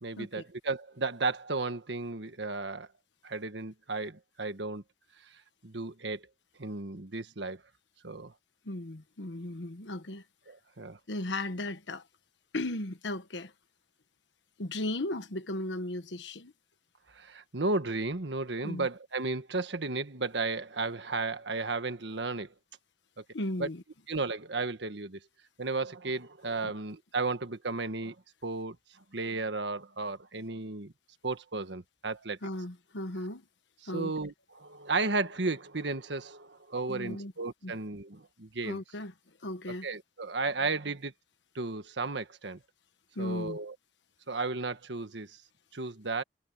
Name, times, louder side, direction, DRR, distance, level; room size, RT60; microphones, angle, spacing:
voice 1, 0.0-2.9 3.2-4.8 5.6-6.2 6.6-7.6 8.0-8.3 10.5-11.0 17.1-22.5 23.2-23.3 23.6-23.7 24.1-25.2 25.6-28.1 28.4-28.8 29.1-30.9 31.2-32.4 33.8-38.8 39.8-41.1 41.5-42.6 43.2-43.7 44.3-45.4 45.7-46.2, right 3 dB, 75° right, 1.5 m, -34 dB
voice 2, 8.6-10.2 11.1-12.0 12.5-13.5 14.6-16.5 18.6-18.9 23.3-23.8 26.6-26.7 32.4-33.4 33.9-34.1 36.9-37.3 37.6-37.7 38.6-39.1 39.4-39.9 43.1-43.6, left 1 dB, 80° left, 1.3 m, -36 dB
head